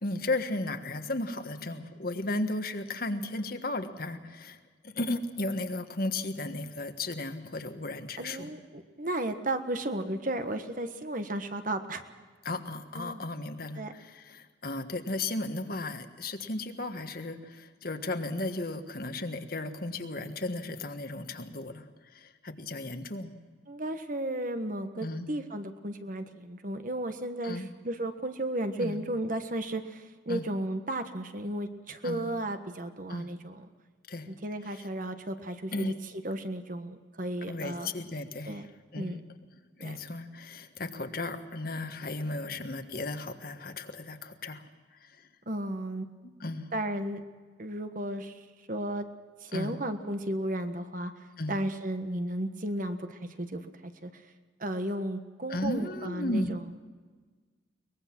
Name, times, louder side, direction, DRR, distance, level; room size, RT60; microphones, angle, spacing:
voice 1, 0.0-4.6 4.8-8.5 12.4-23.3 25.0-25.3 27.4-27.7 28.8-29.0 30.3-30.4 32.0-32.3 33.1-33.3 34.1-34.3 35.7-35.9 37.5-38.6 38.9-39.2 39.8-44.6 45.0-45.2 46.2-46.7 49.5-49.7 51.4-51.5 55.5-56.5, left 2 dB, 50° left, 7 dB, 1.5 m, -35 dB
voice 2, 8.2-12.0 12.9-13.2 13.7-13.9 23.7-33.7 34.2-35.9 36.2-37.9 38.5-38.7 38.9-39.2 39.8-40.0 45.5-46.1 46.7-47.2 47.6-49.1 49.4-54.2 54.6-56.7, right 1 dB, 45° right, 8 dB, 1.4 m, -34 dB
23.0 x 20.5 x 6.1 m, 1.5 s
head